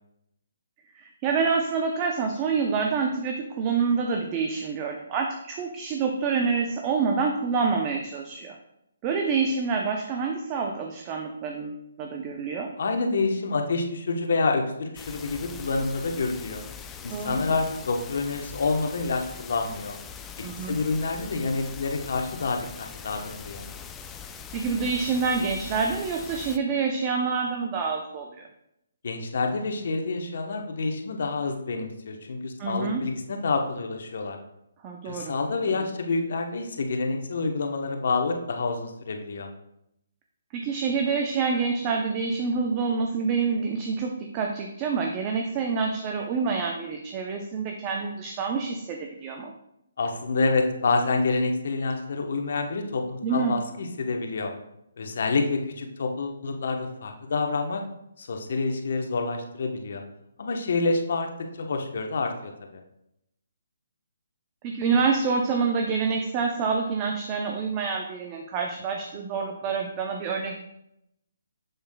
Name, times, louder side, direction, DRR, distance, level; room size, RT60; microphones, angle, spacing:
voice 1, 1.0-8.5 9.0-12.7 17.1-17.4 20.4-20.8 24.5-28.4 32.6-33.1 34.8-35.4 35.7-35.8 40.5-49.5 53.2-53.6 64.6-70.6, right 5 dB, 25° right, 2 dB, 0.6 m, -27 dB
voice 2, 12.8-16.6 17.0-19.9 20.6-23.7 29.0-34.4 35.0-39.5 50.0-54.5 55.0-57.8 58.2-60.0 60.4-62.8, left 3 dB, 65° left, 4 dB, 1.0 m, -28 dB
sound 1, 15.0-26.6, left 7 dB, 10° left, 0.4 m, -42 dB
7.1 x 7.0 x 2.3 m, 0.81 s
hypercardioid pair, 150°, 0 cm